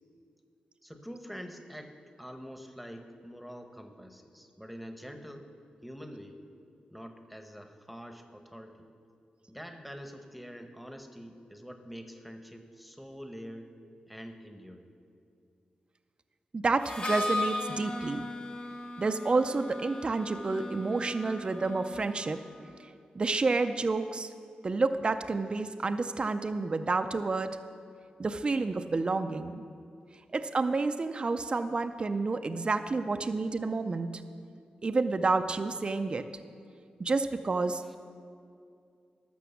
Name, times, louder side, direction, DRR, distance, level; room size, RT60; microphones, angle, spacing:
voice 1, 0.8-5.5 5.8-6.4 6.9-8.9 9.5-13.7 14.1-14.9 37.7-38.0, equal, ahead, 6 dB, 0.9 m, -45 dB
voice 2, 16.5-18.3 19.0-22.4 23.2-24.3 24.6-27.6 28.2-29.6 30.3-34.1 34.8-36.3 37.0-38.0, right 3 dB, 35° right, 9 dB, 0.4 m, -29 dB
Harmonica, 16.8-22.6, left 1 dB, 40° left, 1.0 m, -37 dB
12.5 x 6.0 x 7.0 m, 2.4 s
cardioid pair, 80°, 3 cm